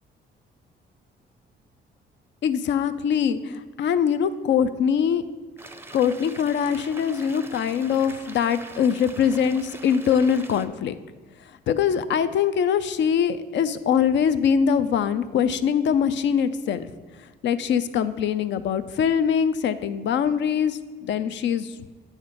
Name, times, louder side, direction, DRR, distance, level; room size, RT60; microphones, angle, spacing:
voice 1, 2.4-5.2 5.9-11.0 11.7-16.9 17.4-21.7, left 7 dB, 65° left, 12 dB, 0.5 m, -23 dB
sound 1, 5.6-10.7, right 2 dB, 10° right, 0.5 m, -43 dB
8.0 x 4.3 x 5.0 m, 1.4 s
cardioid pair, 90°, 20 cm